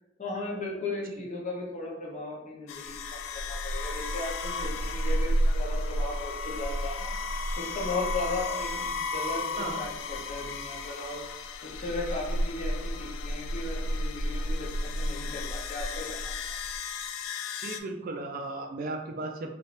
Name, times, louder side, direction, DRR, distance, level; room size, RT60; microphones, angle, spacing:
voice 1, 0.2-7.1 7.6-11.2 11.6-16.6, left 2 dB, 40° left, -3 dB, 0.8 m, -36 dB
sound 1, 2.7-17.8, left 1 dB, 80° left, 0.3 m, -32 dB
voice 2, 17.6-19.5, right 2 dB, 45° right, 4 dB, 0.3 m, -35 dB
2.6 x 2.5 x 3.2 m, 0.91 s
head